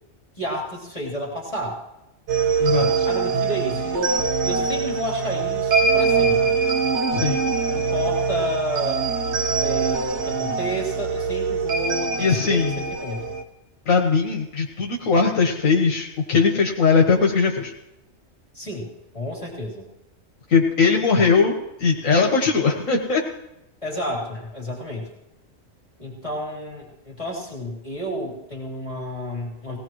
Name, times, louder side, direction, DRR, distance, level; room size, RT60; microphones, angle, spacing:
voice 1, 0.4-1.8 2.8-4.2 4.4-6.6 7.7-9.1 9.6-13.4 18.5-18.9 19.1-19.9 23.8-25.1 26.0-29.8, equal, 25° left, -4 dB, 3.3 m, -31 dB
sound 1, 2.3-13.4, right 5 dB, 60° right, 1.3 m, -23 dB
voice 2, 2.6-3.1 7.1-7.4 12.2-12.8 13.8-17.7 20.5-23.2, left 5 dB, 75° left, 0 dB, 1.7 m, -20 dB
20.5 x 17.5 x 3.1 m, 0.92 s
omnidirectional pair, 1.4 m